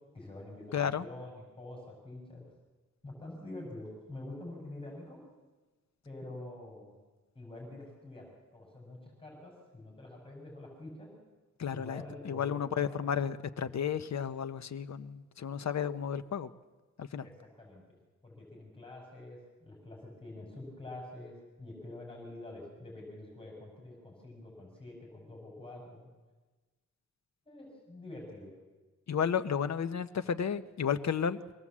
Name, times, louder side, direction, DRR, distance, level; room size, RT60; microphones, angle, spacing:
voice 1, 0.1-2.4 3.0-5.2 6.0-6.9 7.3-11.1 11.7-13.2 17.2-18.0 18.2-26.1 27.5-28.5, left 2 dB, 15° left, -2 dB, 5.7 m, -47 dB
voice 2, 0.7-1.0 11.6-16.5 17.0-17.3 29.1-31.4, left 7 dB, 60° left, 10 dB, 0.9 m, -33 dB
24.5 x 18.0 x 7.4 m, 1.3 s
wide cardioid pair, 165°, 31 cm